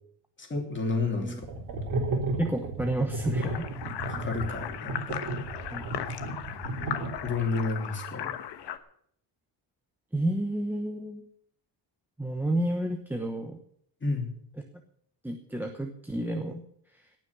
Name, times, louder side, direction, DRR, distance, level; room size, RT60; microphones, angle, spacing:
voice 1, 0.4-1.5 4.1-5.2 7.2-8.3 14.0-14.3, left 3 dB, 25° left, 2 dB, 3.0 m, -30 dB
sound 1, 1.4-7.5, right 2 dB, 50° right, 3.6 m, -33 dB
voice 2, 2.4-3.7 5.7-6.0 10.1-11.2 12.2-13.6 15.2-16.6 16.9-17.1, right 1 dB, 5° right, 4 dB, 1.0 m, -30 dB
sound 2, 3.4-8.8, left 10 dB, 65° left, 1.2 m, -37 dB
18.0 x 6.2 x 8.1 m, 0.66 s
cardioid pair, 150°, 44 cm